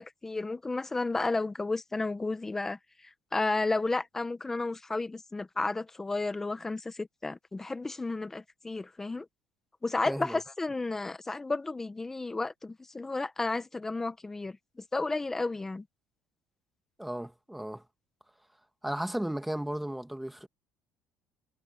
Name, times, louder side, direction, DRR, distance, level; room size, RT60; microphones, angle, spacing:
voice 1, 0.0-2.8 3.3-9.2 9.8-14.6 14.9-15.8, left 3 dB, 15° left, 1.1 m, -32 dB
voice 2, 10.1-10.4 17.0-17.8 18.8-20.5, right 1 dB, 5° right, 2.0 m, -35 dB
cardioid pair, 130°, 3 cm